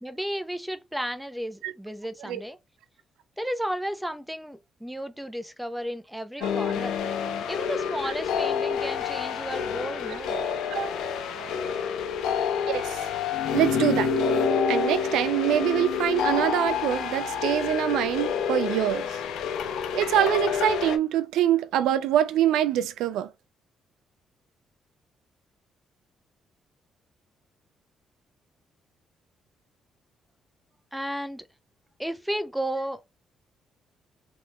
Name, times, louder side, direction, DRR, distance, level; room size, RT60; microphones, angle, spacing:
voice 1, 0.0-2.6 3.4-7.0 7.5-10.4 30.9-31.5 32.0-33.0, equal, 5° right, 0.5 m, -33 dB
sound 1, 6.4-21.0, left 6 dB, 85° left, 0.6 m, -28 dB
voice 2, 12.7-13.0 13.5-14.1 14.7-19.1 19.9-23.3, right 11 dB, 90° right, 0.3 m, -24 dB
3.1 x 2.9 x 2.2 m
cardioid pair, 90°, 0 cm